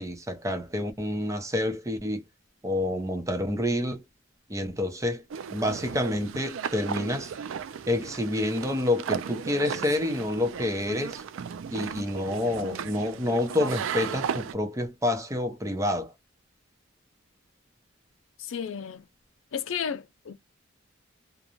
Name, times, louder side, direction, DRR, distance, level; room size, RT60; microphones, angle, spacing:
voice 1, 0.0-2.2 2.6-4.0 4.5-5.2 5.5-7.3 7.9-11.2 11.7-16.1, left 1 dB, 15° right, 0.6 m, -28 dB
sound 1, 5.3-14.5, right 7 dB, 85° right, 0.4 m, -35 dB
voice 2, 18.4-19.1 19.5-20.3, left 7 dB, 85° left, 0.5 m, -33 dB
2.5 x 2.1 x 2.9 m
head